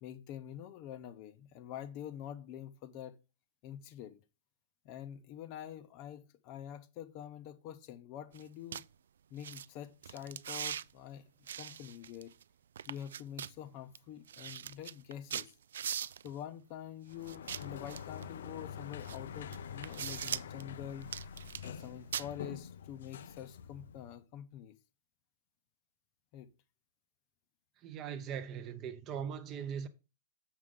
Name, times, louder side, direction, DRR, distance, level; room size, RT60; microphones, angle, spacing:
voice 1, 0.0-3.2 3.6-4.2 4.8-8.8 9.3-11.2 11.5-12.3 12.9-15.6 16.2-21.1 21.6-24.7 26.3-26.5, left 10 dB, 30° left, 0.6 m, -46 dB
sound 1, 8.3-8.4 8.7-8.8 9.4-9.7 10.0-10.8 11.5-12.4 12.8-13.5 14.0-14.1 14.3-16.3 17.3-18.3 19.0-19.2 19.5-20.6 21.0-21.8 22.1-22.3, right 9 dB, 90° right, 0.3 m, -40 dB
Sliding door, 17.1-24.2, left 7 dB, 75° left, 0.6 m, -46 dB
voice 2, 27.8-29.9, right 8 dB, 20° right, 0.6 m, -40 dB
7.2 x 6.5 x 3.7 m
supercardioid pair, 175°, 0 cm